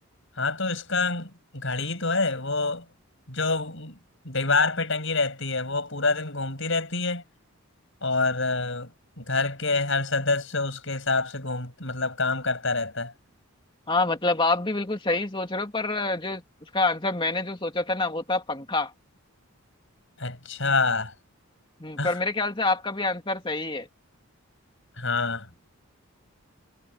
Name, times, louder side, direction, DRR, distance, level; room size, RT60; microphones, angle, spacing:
voice 1, 0.4-2.8 3.3-4.0 4.2-7.2 8.0-8.9 9.2-13.1 20.2-21.1 22.0-22.2 25.0-25.5, left 3 dB, 55° left, 7.9 m, -27 dB
voice 2, 13.9-16.4 16.7-18.9 21.8-23.9, left 2 dB, 20° left, 2.6 m, -26 dB
head